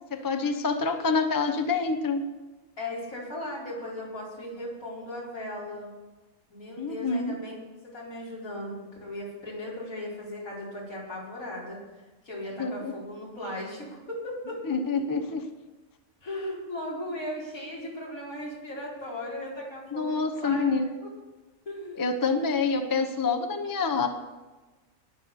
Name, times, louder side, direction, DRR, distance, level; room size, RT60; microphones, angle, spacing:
voice 1, 0.1-2.2 6.8-7.4 12.6-12.9 14.7-15.4 19.9-20.9 22.0-24.1, left 4 dB, 20° left, 5 dB, 0.7 m, -27 dB
voice 2, 2.8-5.9 6.5-7.6 7.9-14.6 16.2-20.7 21.0-21.1 21.7-22.7, left 1 dB, 75° left, -5 dB, 5.1 m, -37 dB
19.5 x 6.7 x 6.8 m, 1.2 s
omnidirectional pair, 1.5 m